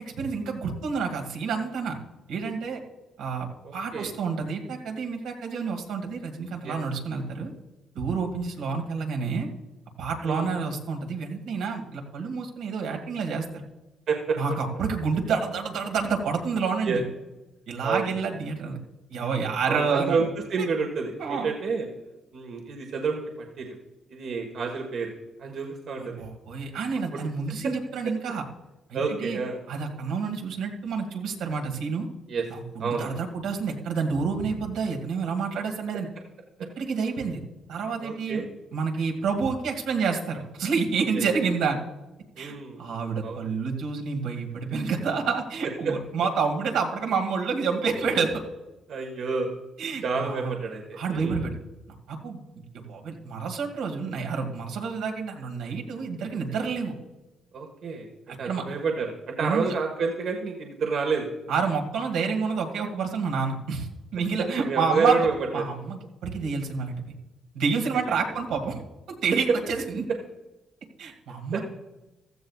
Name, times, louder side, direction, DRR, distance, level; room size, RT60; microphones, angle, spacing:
voice 1, 0.2-2.0 2.3-2.8 3.2-7.5 8.0-9.5 10.0-13.6 14.4-17.0 17.7-18.8 19.1-20.3 20.6-20.7 21.2-21.5 26.0-28.4 28.9-29.4 29.7-32.1 32.5-36.1 36.8-37.4 37.7-38.4 38.7-41.8 42.4-48.4 49.8-50.6 50.9-51.5 52.1-56.9 58.4-58.6 59.4-59.6 61.5-65.3 65.5-67.0 67.5-68.8 69.2-70.0 71.0-71.6, right 5 dB, 85° right, 2 dB, 2.1 m, -29 dB
voice 2, 3.6-4.1 6.6-6.8 10.2-10.5 14.1-14.4 16.8-17.0 17.8-18.1 19.7-21.9 22.3-23.8 24.1-25.1 25.4-26.2 27.1-27.2 28.9-29.6 32.3-32.4 32.8-33.2 38.0-38.5 41.1-41.2 42.4-42.9 43.2-43.5 48.9-49.6 50.0-51.4 57.5-61.3 64.6-65.6 68.0-68.2 71.5-71.6, right 4 dB, 65° right, 2 dB, 1.4 m, -29 dB
15.5 x 13.5 x 2.4 m, 1.0 s
cardioid pair, 90°, 0 cm